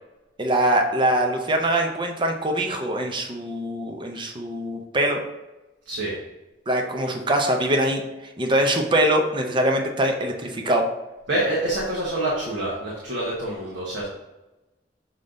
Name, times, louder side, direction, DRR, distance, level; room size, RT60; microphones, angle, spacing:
voice 1, 0.4-5.2 6.7-8.0 8.4-10.9, right 1 dB, 25° right, 3 dB, 0.7 m, -23 dB
voice 2, 11.3-14.1, right 1 dB, 75° right, -5 dB, 1.3 m, -26 dB
6.5 x 3.9 x 3.8 m, 1.0 s
head